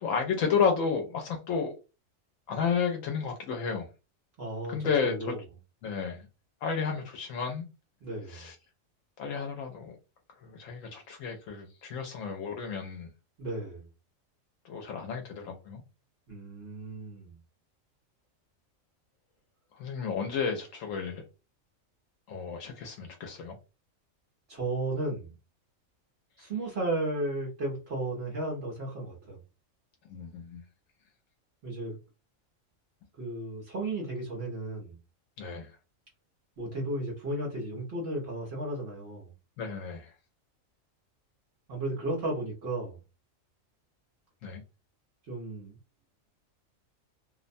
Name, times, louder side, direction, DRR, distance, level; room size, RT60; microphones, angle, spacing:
voice 1, 0.0-1.7 2.5-3.9 4.7-5.3 5.8-6.3 6.6-7.6 8.3-8.6 9.2-10.0 10.4-13.1 14.6-15.8 19.8-21.2 22.3-23.5 30.1-30.6 35.4-35.7 39.6-40.1 44.4-44.6, left 6 dB, 80° left, 1.0 m, -32 dB
voice 2, 4.4-5.4 8.0-8.5 13.4-13.9 16.3-17.4 24.5-25.3 26.4-29.4 31.6-32.0 33.2-35.0 36.6-39.3 41.7-43.0 45.3-45.7, right 2 dB, 55° right, 1.0 m, -34 dB
2.7 x 2.1 x 2.5 m
omnidirectional pair, 1.4 m